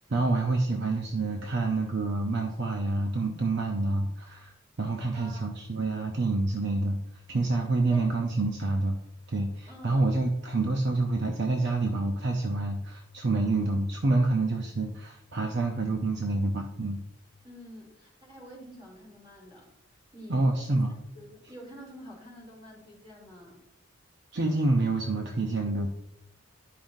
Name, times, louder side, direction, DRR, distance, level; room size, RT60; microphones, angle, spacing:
voice 1, 0.1-4.5 4.8-7.0 7.3-9.0 9.3-17.0 20.3-20.9 24.3-25.9, right 2 dB, 55° right, 2 dB, 0.7 m, -27 dB
voice 2, 5.1-5.5 7.9-8.1 9.7-10.1 17.4-19.7 20.1-23.6, equal, 25° right, -4 dB, 3.0 m, -48 dB
10.0 x 5.5 x 2.6 m, 0.81 s
head